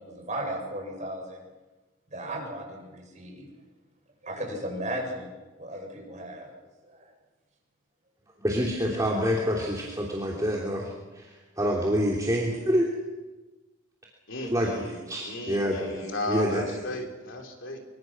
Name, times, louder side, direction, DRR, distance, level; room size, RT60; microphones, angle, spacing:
voice 1, 0.0-1.4 2.1-3.5 4.2-5.3 5.6-6.5 6.8-7.1, right 1 dB, 35° right, 0 dB, 8.0 m, -35 dB
voice 2, 8.4-12.9 14.4-16.0 16.3-16.6, equal, 15° right, -3 dB, 3.1 m, -27 dB
voice 3, 14.3-17.8, left 1 dB, 60° left, 2 dB, 3.7 m, -35 dB
25.0 x 24.0 x 6.2 m, 1.2 s
head